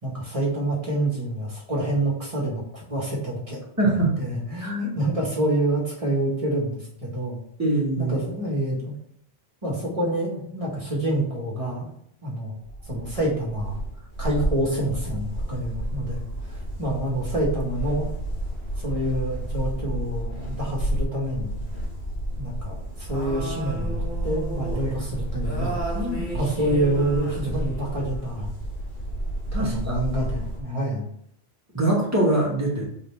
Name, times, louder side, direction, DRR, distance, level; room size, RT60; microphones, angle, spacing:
voice 1, 0.0-3.6 4.2-7.4 8.0-9.0 9.6-11.9 12.2-12.5 12.9-13.8 14.2-16.2 16.8-18.1 18.8-21.6 22.4-28.5 29.6-31.0, right 1 dB, 30° right, -4 dB, 2.0 m, -27 dB
voice 2, 3.8-4.1 4.6-4.8 7.6-8.2 24.8-24.9 26.4-26.5 29.5-30.0 31.7-32.9, right 2 dB, 15° right, -5 dB, 2.1 m, -23 dB
sound 1, 12.6-30.6, right 1 dB, 75° left, 2.3 m, -31 dB
4.8 x 4.3 x 5.8 m, 0.70 s
omnidirectional pair, 1.1 m